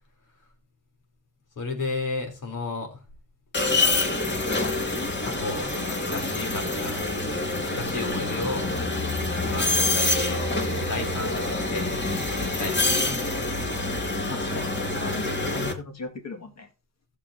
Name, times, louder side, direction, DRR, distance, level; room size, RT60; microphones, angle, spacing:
voice 1, 1.6-3.0 5.2-7.2 7.5-8.7 9.4-10.5 10.7-12.0 12.3-13.5, left 3 dB, 70° left, 3.7 m, -34 dB
sound 1, 3.5-15.7, left 2 dB, 35° left, 2.3 m, -26 dB
voice 2, 14.3-16.7, left 3 dB, 50° left, 2.1 m, -37 dB
15.5 x 7.2 x 2.8 m
cardioid pair, 80°, 33 cm